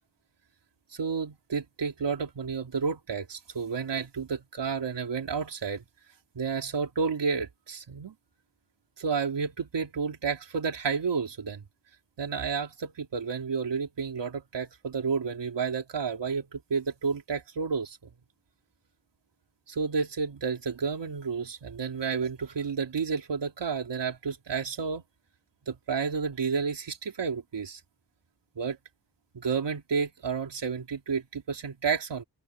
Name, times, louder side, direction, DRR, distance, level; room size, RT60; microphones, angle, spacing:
voice 1, 0.9-5.8 6.3-8.1 9.0-11.6 12.2-18.0 19.7-25.0 25.7-27.8 28.6-28.8 29.3-32.2, right 5 dB, 80° right, 3.9 m, -31 dB
open air
cardioid pair, 70°, 42 cm